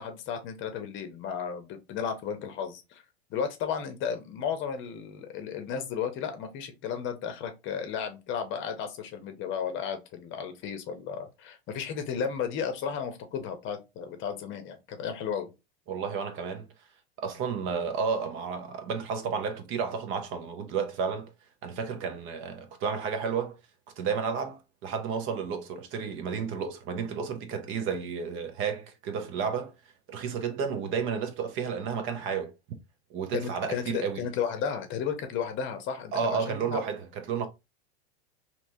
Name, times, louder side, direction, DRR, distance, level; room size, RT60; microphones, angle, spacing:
voice 1, 0.0-3.0 3.3-15.5 33.3-36.8, left 7 dB, 35° left, 0.8 m, -34 dB
voice 2, 15.9-16.6 17.2-21.3 21.6-23.6 24.0-29.7 30.1-32.5 33.1-34.2 36.1-37.5, right 6 dB, 40° right, 0.6 m, -32 dB
3.3 x 2.9 x 2.7 m
hypercardioid pair, 110°, 32 cm